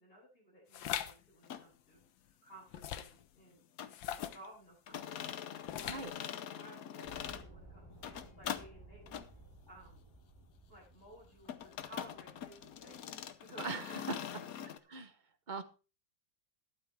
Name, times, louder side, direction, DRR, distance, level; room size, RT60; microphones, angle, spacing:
voice 1, 0.0-3.6 4.0-5.2 5.6-6.2 6.5-9.2 9.7-10.1 10.7-14.8, right 1 dB, 30° left, -4 dB, 8.3 m, -57 dB
sound 1, 0.7-1.1 2.7-3.2 3.9-4.5 5.7-6.2, left 10 dB, 90° left, 1.6 m, -40 dB
sound 2, 1.4-1.6 3.8-4.4 4.9-7.5 7.9-8.7 9.1-9.3 11.5-14.8, left 9 dB, 60° left, 1.1 m, -43 dB
sound 3, 7.0-13.3, right 2 dB, 15° left, 3.8 m, -57 dB
voice 2, 13.6-14.2 14.9-15.1 15.5-15.6, right 4 dB, 40° right, 10 dB, 0.7 m, -40 dB
13.0 x 11.5 x 3.4 m, 0.33 s
omnidirectional pair, 2.0 m